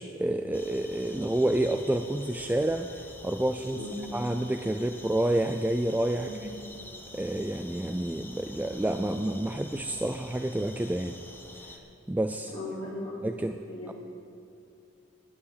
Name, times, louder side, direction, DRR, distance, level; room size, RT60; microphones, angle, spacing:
voice 1, 0.0-3.8 4.1-6.3 7.1-11.2 12.1-12.5 13.2-13.6 13.9-14.0, right 1 dB, 10° right, 7 dB, 0.3 m, -29 dB
sound 1, 0.5-11.8, left 2 dB, 10° left, 1.0 m, -47 dB
voice 2, 6.1-6.7 12.5-13.3 13.7-13.9, left 1 dB, 25° left, -5 dB, 4.2 m, -38 dB
11.0 x 9.6 x 8.5 m, 2.5 s
head